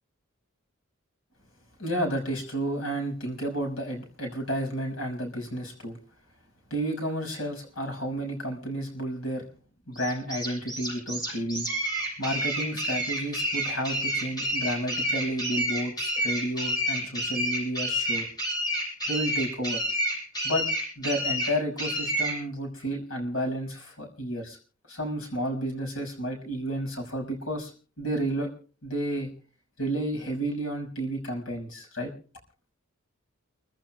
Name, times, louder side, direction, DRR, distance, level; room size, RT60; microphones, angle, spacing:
voice 1, 1.8-6.0 6.7-9.4 9.9-11.7 12.2-18.2 19.1-19.8 20.4-20.7 21.0-24.6 24.9-27.7 28.0-28.5 28.8-29.3 29.8-32.1, right 1 dB, 70° left, 1 dB, 5.9 m, -31 dB
sound 1, 10.0-22.4, equal, 20° left, 7.9 m, -29 dB
29.0 x 15.5 x 2.3 m, 0.40 s
head